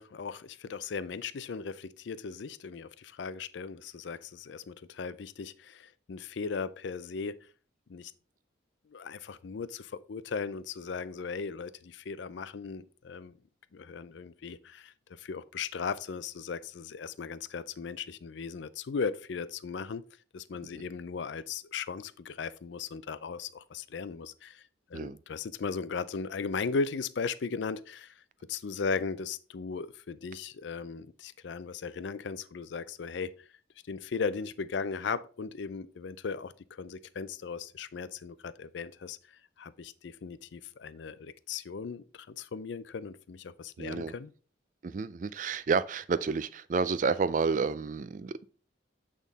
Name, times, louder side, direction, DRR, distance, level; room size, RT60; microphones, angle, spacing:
voice 1, 0.0-7.5 7.9-8.1 8.9-13.3 13.7-14.9 15.2-20.0 20.3-24.6 24.9-28.1 28.5-33.3 33.9-39.2 39.6-44.3, left 5 dB, 70° left, 0.4 m, -37 dB
voice 2, 43.8-44.1 44.8-48.5, right 5 dB, 40° right, 0.3 m, -30 dB
8.3 x 3.7 x 4.0 m
head